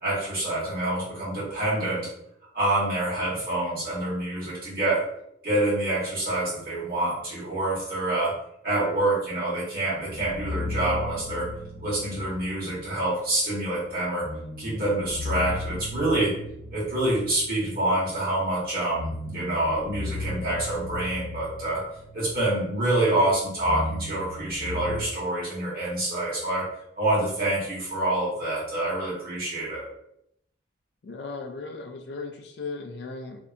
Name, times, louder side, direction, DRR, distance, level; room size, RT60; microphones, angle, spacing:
voice 1, 0.0-2.1 2.5-5.0 5.4-8.3 8.6-11.5 11.8-14.3 14.6-16.3 16.7-21.8 22.1-26.7 27.0-29.8, right 1 dB, 50° right, -7 dB, 1.2 m, -26 dB
sound 1, 10.1-13.0 14.2-18.0 18.8-22.8 23.1-25.0, left 2 dB, 25° left, 0.8 m, -36 dB
voice 2, 31.0-33.4, left 3 dB, 60° left, 4 dB, 0.4 m, -36 dB
2.7 x 2.1 x 2.4 m, 0.76 s
head